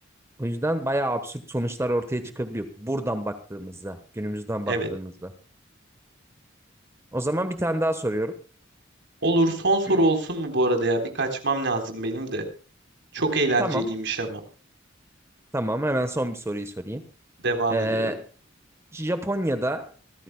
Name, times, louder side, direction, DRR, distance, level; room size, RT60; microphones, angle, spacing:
voice 1, 0.4-5.3 7.1-8.3 13.6-13.9 15.5-17.0 17.7-18.3 18.9-19.9, right 1 dB, 15° right, 9 dB, 1.1 m, -28 dB
voice 2, 9.2-12.4 13.1-14.4 17.4-18.1, right 2 dB, 65° right, 5 dB, 3.9 m, -24 dB
25.5 x 14.0 x 2.2 m, 0.36 s
head